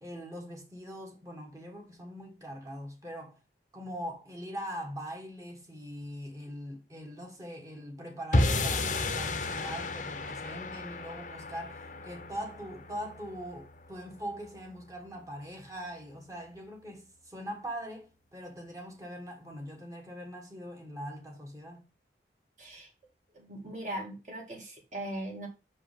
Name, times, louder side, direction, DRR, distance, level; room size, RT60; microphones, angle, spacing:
voice 1, 0.0-3.4 3.7-21.9, equal, 20° right, 1.3 m, -42 dB
sound 1, 8.3-14.7, left 2 dB, 45° left, 0.7 m, -32 dB
voice 2, 22.6-22.9 23.3-25.5, right 1 dB, 45° right, 1.8 m, -39 dB
5.9 x 4.9 x 3.4 m
head